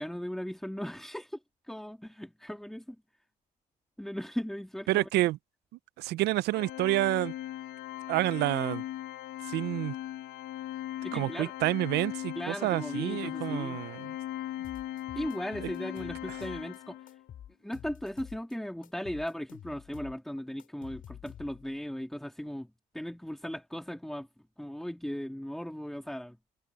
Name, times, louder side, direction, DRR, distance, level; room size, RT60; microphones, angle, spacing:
voice 1, 0.0-1.4 1.7-3.0 4.0-5.2 11.0-11.5 12.3-13.8 15.1-17.0 17.6-22.7 22.9-24.3 24.6-26.4, equal, ahead, 2.2 m, -37 dB
voice 2, 4.9-5.4 6.0-7.3 8.1-8.8 9.5-10.0 11.1-14.2, right 16 dB, 80° right, 0.6 m, -29 dB
Organ, 6.5-17.2, left 13 dB, 80° left, 1.0 m, -39 dB
sound 1, 14.6-16.8 17.1-18.5 18.8-21.8, left 10 dB, 55° left, 5.6 m, -49 dB
cardioid pair, 110°, 17 cm